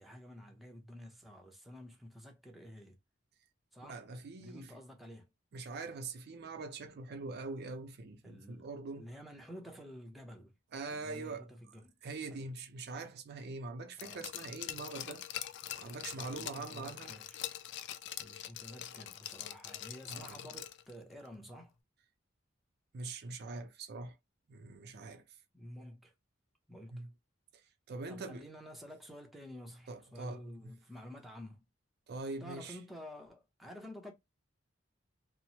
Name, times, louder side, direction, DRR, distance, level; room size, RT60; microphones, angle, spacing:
voice 1, 0.0-3.0 3.7-4.0 4.4-5.3 8.2-8.7 9.0-10.5 10.9-11.9 12.3-12.5 14.0-14.3 15.7-17.4 18.2-21.7 25.5-26.1 26.7-27.1 28.1-31.7 32.4-34.1, equal, ahead, 0.6 m, -50 dB
voice 2, 3.8-4.7 5.5-9.1 10.7-11.5 12.0-15.3 15.8-17.1 20.1-20.4 22.9-24.2 24.5-25.2 26.9-27.1 27.9-28.5 29.9-30.7 32.1-32.8, right 3 dB, 55° right, 0.4 m, -43 dB
Glass, 14.0-20.9 21.3-21.4, left 11 dB, 60° left, 0.3 m, -44 dB
2.9 x 2.0 x 2.8 m
head